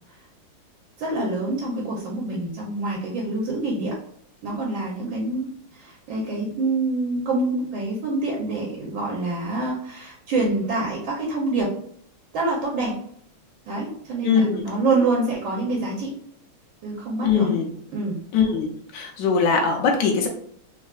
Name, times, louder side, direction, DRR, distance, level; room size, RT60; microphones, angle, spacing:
voice 1, 1.0-3.9 4.4-11.7 12.3-13.0 13.7-16.1 16.8-17.5 17.9-18.2, right 2 dB, 75° right, -3 dB, 1.4 m, -26 dB
voice 2, 14.2-14.6 17.2-17.7 18.3-20.3, left 5 dB, 70° left, 1 dB, 1.1 m, -21 dB
3.6 x 3.1 x 2.3 m, 0.64 s
omnidirectional pair, 2.3 m